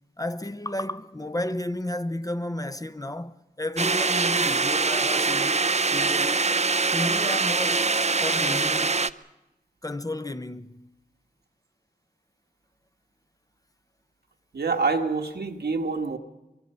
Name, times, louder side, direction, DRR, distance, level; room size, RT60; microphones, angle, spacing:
voice 1, 0.2-5.6 5.8-6.5 6.9-7.9 8.2-9.0 9.8-10.9, left 1 dB, 20° left, 0.9 m, -32 dB
sound 1, 3.8-9.1, right 4 dB, 45° right, 0.6 m, -23 dB
voice 2, 14.5-16.2, right 4 dB, 85° right, 1.6 m, -26 dB
24.0 x 23.5 x 5.6 m
cardioid pair, 40°, 16 cm